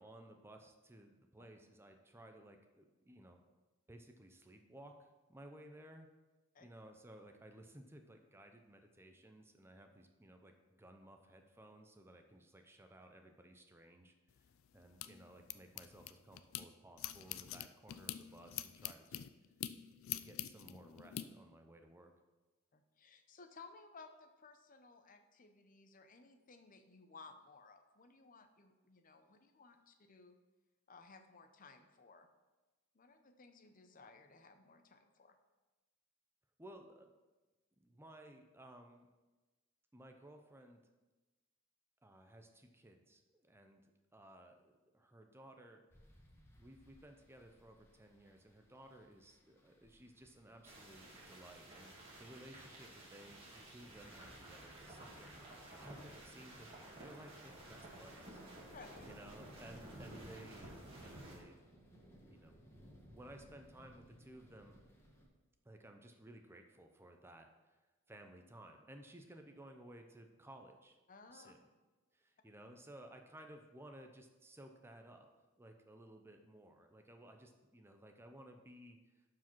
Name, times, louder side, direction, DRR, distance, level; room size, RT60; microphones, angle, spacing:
voice 1, 0.0-3.4 3.9-6.1 6.6-19.3 20.2-22.1 36.6-37.1 37.8-39.1 39.9-40.9 42.0-45.9 46.5-58.4 59.1-61.6 62.2-62.6 62.8-64.8 65.6-67.8 68.1-71.0 71.3-71.7 72.1-75.3 75.6-79.2, right 1 dB, 10° right, 5 dB, 0.6 m, -58 dB
sound 1, 14.3-16.7 17.0-21.2, left 12 dB, 65° left, 0.4 m, -45 dB
voice 2, 22.7-30.4 30.9-32.3 32.9-35.4 58.7-59.1 71.1-71.5, left 4 dB, 40° left, 7 dB, 0.7 m, -59 dB
sound 2, 45.9-65.3, equal, 10° left, 1.3 m, -63 dB
sound 3, 50.6-61.4, right 1 dB, 25° right, 2.3 m, -54 dB
11.5 x 4.8 x 4.5 m, 1.2 s
head